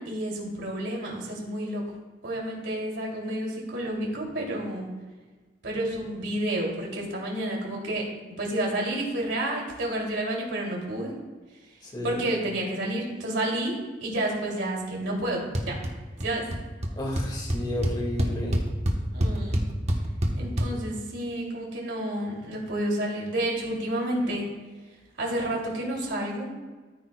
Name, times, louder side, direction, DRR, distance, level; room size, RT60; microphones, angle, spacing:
voice 1, 0.0-1.8 2.2-4.9 5.6-11.1 11.7-11.8 12.0-15.8 16.2-16.5 19.1-19.6 20.3-24.5 25.2-26.5, right 1 dB, 90° right, -2 dB, 2.8 m, -30 dB
voice 2, 11.8-12.2 16.9-18.6, left 1 dB, 25° left, -1 dB, 2.0 m, -32 dB
sound 1, 15.5-15.9 16.2-16.6 16.8-16.9 17.2-20.7, equal, 35° right, 1.1 m, -25 dB
13.5 x 8.9 x 2.3 m, 1.4 s
head